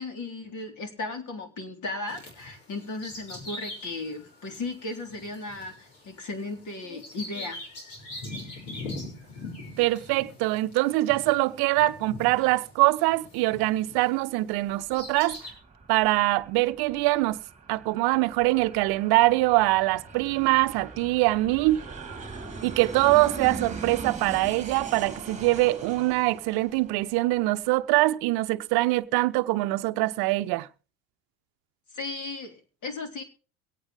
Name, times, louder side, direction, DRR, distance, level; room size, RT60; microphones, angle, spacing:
voice 1, 0.0-7.6 31.9-33.2, left 3 dB, 45° left, 3.7 m, -36 dB
Bird vocalization bird call bird song, 2.1-14.2 14.6-15.5, left 2 dB, 70° left, 6.1 m, -42 dB
voice 2, 9.8-15.4 15.9-17.4 17.7-21.8 22.6-30.7, right 19 dB, 65° right, 0.8 m, -23 dB
Aircraft, 14.6-27.7, right 4 dB, 15° right, 2.3 m, -41 dB
23.5 x 8.9 x 3.2 m
supercardioid pair, 90°, 41 cm